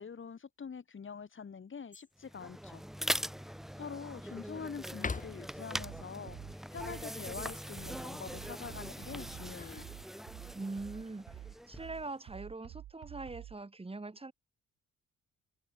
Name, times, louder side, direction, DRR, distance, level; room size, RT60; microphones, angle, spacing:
voice 1, 0.0-2.8 3.4-9.9, left 6 dB, 40° left, 7.1 m, -45 dB
sound 1, 1.9-2.4 2.9-3.0 3.6-4.4 4.9-5.7 9.2-10.5 11.9-12.4, left 4 dB, 25° left, 2.5 m, -44 dB
sound 2, 2.2-12.1, equal, ahead, 2.0 m, -42 dB
sound 3, 5.8-13.6, right 13 dB, 80° right, 4.8 m, -49 dB
voice 2, 10.5-11.4 11.7-14.3, right 3 dB, 20° right, 7.6 m, -42 dB
cardioid pair, 90°, 30 cm